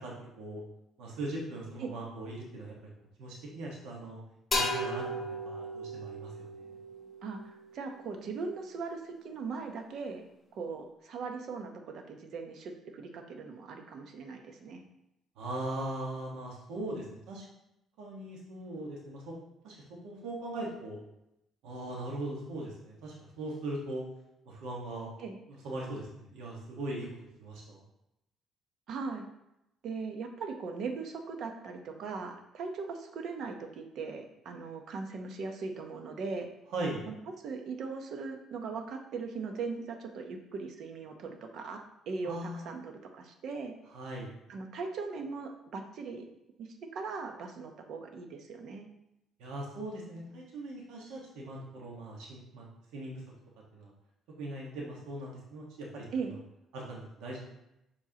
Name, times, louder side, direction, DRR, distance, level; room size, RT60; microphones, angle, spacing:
voice 1, 0.0-0.6 1.0-2.7 3.2-4.2 4.5-6.6 15.4-17.4 18.0-19.3 19.6-19.8 20.0-21.0 21.6-24.0 24.4-25.1 25.5-27.1 27.4-27.8 36.7-37.0 42.2-42.7 43.9-44.3 49.4-53.2 53.7-53.9 54.4-56.4 56.7-57.4, right 1 dB, 90° right, -3 dB, 1.5 m, -40 dB
sound 1, 4.5-8.1, left 1 dB, 20° left, 2.1 m, -36 dB
voice 2, 7.2-10.2 10.5-14.8 25.2-25.4 28.9-29.3 29.8-36.5 37.1-43.7 44.5-46.2 46.6-48.9 56.1-56.3, right 4 dB, 60° right, 4 dB, 0.9 m, -39 dB
7.3 x 4.7 x 2.9 m, 0.85 s
cardioid pair, 130°, 0 cm